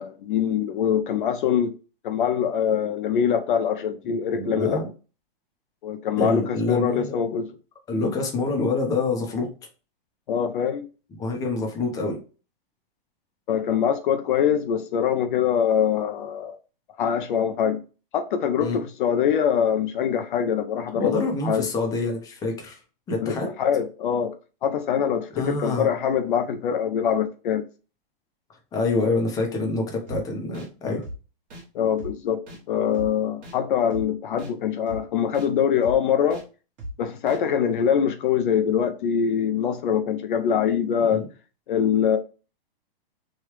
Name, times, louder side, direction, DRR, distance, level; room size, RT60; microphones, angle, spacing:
voice 1, 0.0-1.7 2.0-4.8 5.8-7.6 10.3-10.9 13.5-16.6 17.0-17.8 18.1-21.7 23.2-24.4 24.6-27.7 31.7-36.4 37.0-41.2 41.7-42.2, left 8 dB, 60° left, 0.5 m, -23 dB
voice 2, 4.0-4.9 6.2-7.2 7.9-9.5 11.2-12.2 18.6-18.8 21.0-22.8 23.1-23.5 25.3-25.9 28.7-31.0 41.1-41.3, left 3 dB, 10° left, 0.6 m, -26 dB
sound 1, 30.1-30.2 30.5-30.7 31.0-31.2 31.5-31.6 32.0-32.1 32.5-32.6 32.9-33.1 33.4-33.6 33.9-34.0 34.4-34.5 34.9-35.0 35.3-35.5 35.8-36.0 36.3-36.4 36.8-36.9 37.3-37.4, equal, 30° right, 1.1 m, -36 dB
3.1 x 2.3 x 3.1 m
hypercardioid pair, 145°, 30 cm